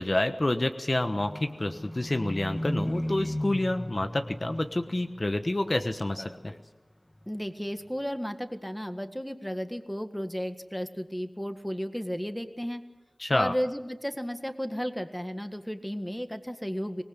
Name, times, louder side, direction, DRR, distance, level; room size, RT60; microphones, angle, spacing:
voice 1, 0.0-6.5 13.2-13.5, left 1 dB, 45° left, 7 dB, 1.2 m, -28 dB
Livestock farm animals working animals, 0.9-5.7 6.0-6.7 7.1-7.3, left 1 dB, 30° left, 1.6 m, -36 dB
voice 2, 7.3-12.8 13.3-17.0, equal, 5° left, 8 dB, 1.8 m, -34 dB
25.0 x 20.0 x 8.3 m, 1.1 s
wide cardioid pair, 55°, 0 cm